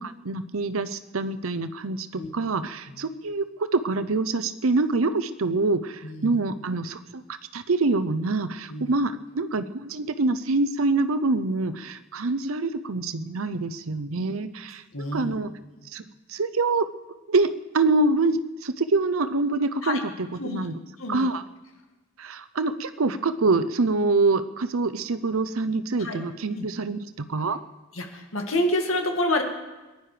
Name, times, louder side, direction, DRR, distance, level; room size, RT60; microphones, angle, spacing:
voice 1, 0.0-3.5 3.7-7.2 7.5-14.8 15.1-15.5 15.9-16.0 16.3-16.9 17.3-17.5 17.7-20.0 20.4-20.8 21.1-21.4 22.2-27.6, right 3 dB, 85° right, 12 dB, 0.7 m, -25 dB
voice 2, 6.0-6.4 8.7-8.9 14.9-15.4 19.8-20.0 20.4-20.6 21.0-21.3 26.0-26.2 26.5-26.6 27.9-29.4, left 1 dB, 80° left, 3 dB, 2.1 m, -28 dB
22.0 x 10.5 x 5.1 m, 1.1 s
head